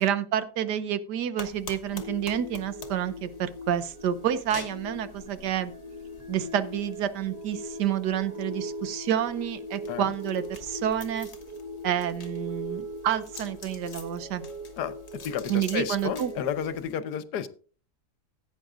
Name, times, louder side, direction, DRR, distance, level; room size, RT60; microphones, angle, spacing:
voice 1, 0.0-5.7 6.3-11.3 11.8-14.5 15.5-16.3, right 10 dB, 75° right, 1.4 m, -29 dB
sound 1, 1.4-17.0, left 4 dB, 45° left, 1.5 m, -48 dB
sound 2, 1.8-16.7, equal, 15° right, 0.9 m, -40 dB
voice 2, 15.2-17.5, left 9 dB, 75° left, 1.3 m, -31 dB
16.0 x 9.1 x 2.5 m
omnidirectional pair, 1.8 m